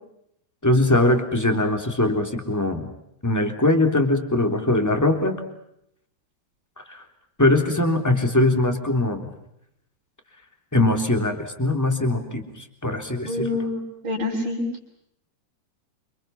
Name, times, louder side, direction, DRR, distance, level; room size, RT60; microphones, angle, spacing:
voice 1, 0.6-2.9 3.2-5.3 6.8-7.0 7.4-9.3 10.7-13.5, left 2 dB, 5° left, 5 dB, 2.7 m, -21 dB
voice 2, 13.3-14.6, left 2 dB, 30° right, -6 dB, 7.2 m, -27 dB
30.0 x 27.5 x 6.0 m, 0.79 s
omnidirectional pair, 4.8 m